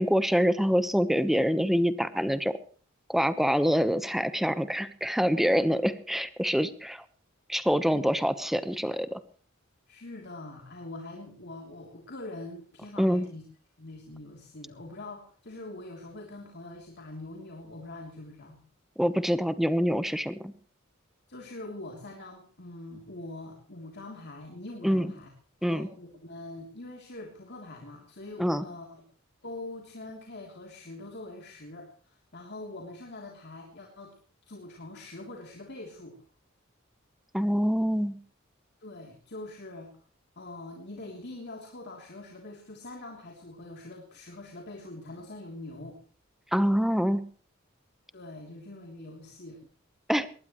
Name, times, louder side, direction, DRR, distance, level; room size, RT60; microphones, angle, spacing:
voice 1, 0.0-2.6 3.1-7.0 7.5-9.2 13.0-13.2 19.0-20.5 24.8-25.1 25.6-25.9 28.4-28.6 37.3-38.2 46.5-47.2 50.1-50.3, equal, ahead, 12 dB, 1.1 m, -25 dB
voice 2, 9.9-13.4 13.8-18.6 21.3-25.3 25.6-29.0 29.4-34.2 34.5-36.2 38.8-40.1 40.4-46.0 48.1-49.6, left 2 dB, 55° left, 1 dB, 3.2 m, -43 dB
22.0 x 19.0 x 3.1 m, 0.41 s
head